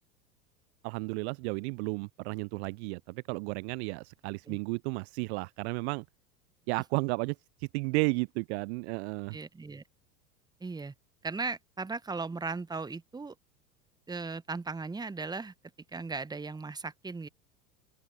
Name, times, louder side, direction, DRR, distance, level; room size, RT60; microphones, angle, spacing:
voice 1, 0.8-6.0 6.7-9.4, right 29 dB, 45° right, 0.6 m, -33 dB
voice 2, 9.3-9.8 10.6-10.9 11.2-13.3 14.1-15.5 15.9-17.3, right 4 dB, 10° right, 1.2 m, -37 dB
open air
figure-of-eight pair, 85°, 46 cm